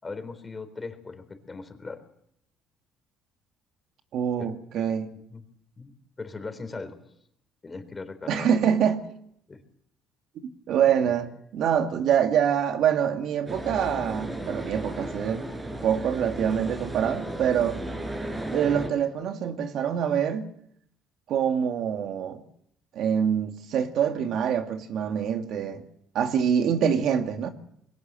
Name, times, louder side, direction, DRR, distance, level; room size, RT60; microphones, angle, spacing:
voice 1, 0.0-2.0 4.4-4.5 5.3-5.4 5.8-5.9 6.2-7.0 7.6-8.5 9.5-9.6 11.0-11.1, left 3 dB, 25° left, 3.9 m, -39 dB
voice 2, 4.1-5.1 8.3-9.0 10.7-11.3 11.5-15.5 15.8-17.8 18.5-20.5 21.3-22.4 22.9-25.8 26.1-27.5, right 8 dB, 65° right, 2.3 m, -25 dB
sound 1, 13.5-18.9, right 1 dB, 20° right, 5.1 m, -34 dB
22.0 x 18.0 x 7.7 m
cardioid pair, 95°, 0 cm